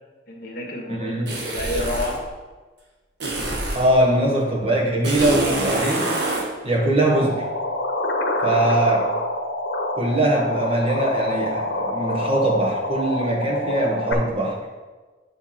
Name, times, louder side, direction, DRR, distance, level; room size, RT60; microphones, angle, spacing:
voice 1, 0.3-2.3 8.4-8.8, left 1 dB, 55° left, -1 dB, 1.6 m, -30 dB
voice 2, 0.9-1.3 3.7-6.2 6.6-7.5 8.4-9.1 9.9-14.6, right 1 dB, 35° right, -2 dB, 1.5 m, -21 dB
sound 1, 1.3-2.2 3.2-3.9 5.0-6.5, right 2 dB, 75° right, 1.5 m, -25 dB
sound 2, 7.1-14.1, left 1 dB, 85° left, 0.9 m, -26 dB
8.7 x 3.5 x 5.8 m, 1.3 s
head